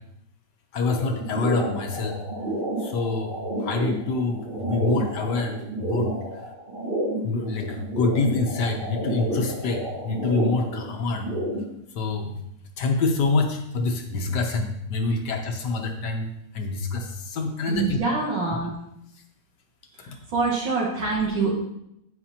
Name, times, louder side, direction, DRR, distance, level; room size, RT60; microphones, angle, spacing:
voice 1, 0.7-2.2 2.8-6.1 7.2-11.3 11.9-12.4 12.8-16.3 16.5-18.0 20.1-20.2, left 3 dB, 60° left, 4 dB, 1.4 m, -26 dB
sound 1, 0.9-11.7, right 1 dB, 30° right, 1.5 m, -30 dB
voice 2, 17.7-18.8 20.0-21.5, right 4 dB, 70° right, -5 dB, 2.7 m, -25 dB
9.4 x 8.6 x 2.9 m, 0.78 s
omnidirectional pair, 2.3 m